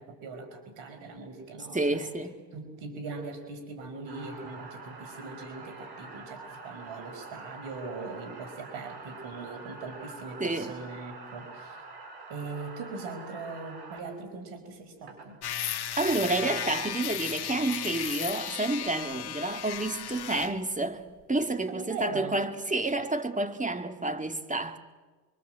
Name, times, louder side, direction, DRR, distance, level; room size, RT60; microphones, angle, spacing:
voice 1, 0.0-2.1 2.5-11.8 12.3-15.4 21.7-22.4, right 4 dB, 85° right, 5.5 m, -40 dB
voice 2, 1.7-2.4 10.4-10.7 15.6-21.0 21.3-24.8, right 2 dB, 15° right, 2.7 m, -29 dB
sound 1, 4.1-14.0 15.1-15.3 16.2-16.6, right 3 dB, 60° right, 7.6 m, -46 dB
sound 2, 15.4-20.5, left 10 dB, 60° left, 1.8 m, -35 dB
26.0 x 24.0 x 7.9 m
supercardioid pair, 60°, 44 cm